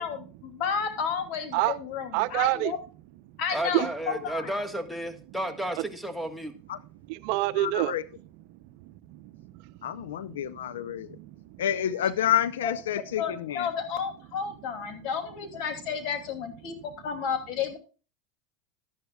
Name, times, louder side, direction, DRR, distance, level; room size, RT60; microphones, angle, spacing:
voice 1, 0.0-2.8 3.4-4.5 12.6-12.7 13.2-17.8, left 7 dB, 55° left, 2.6 m, -32 dB
voice 2, 2.1-2.8 3.3-3.4 3.7-3.9 5.8-5.9 7.1-7.9 8.5-9.9 11.1-11.6, right 17 dB, 65° right, 0.6 m, -29 dB
voice 3, 3.5-6.5, right 1 dB, ahead, 1.5 m, -32 dB
voice 4, 7.6-8.0 9.8-11.2 11.6-13.7, left 10 dB, 90° left, 0.5 m, -29 dB
12.5 x 11.0 x 2.3 m
supercardioid pair, 105°, 0 cm